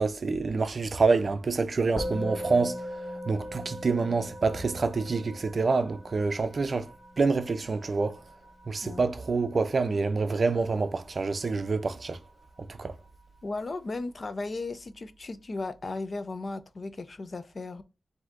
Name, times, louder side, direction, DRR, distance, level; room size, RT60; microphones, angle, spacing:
voice 1, 0.0-2.8 3.3-6.9 7.2-8.2 8.7-12.2 12.8-12.9, right 4 dB, 50° right, 0.5 m, -27 dB
Musical instrument, 2.0-11.5, equal, 20° left, 1.2 m, -40 dB
voice 2, 13.4-17.8, left 3 dB, 45° left, 0.5 m, -36 dB
7.7 x 2.7 x 2.4 m
wide cardioid pair, 110°, 0 cm